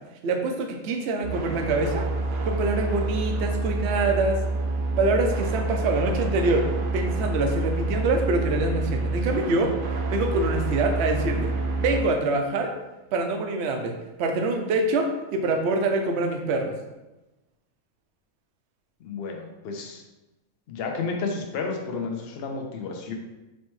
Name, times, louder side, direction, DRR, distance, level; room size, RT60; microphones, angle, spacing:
voice 1, 0.2-2.1 2.4-4.4 5.0-6.7 6.9-9.7 10.1-12.7 13.1-16.7, right 2 dB, 60° right, 4 dB, 0.8 m, -25 dB
sound 1, 1.2-12.0, right 2 dB, 80° right, 0.4 m, -27 dB
voice 2, 19.0-20.0 20.7-23.1, left 4 dB, 55° left, 2 dB, 0.7 m, -31 dB
4.3 x 3.2 x 3.1 m, 1.0 s
omnidirectional pair, 1.5 m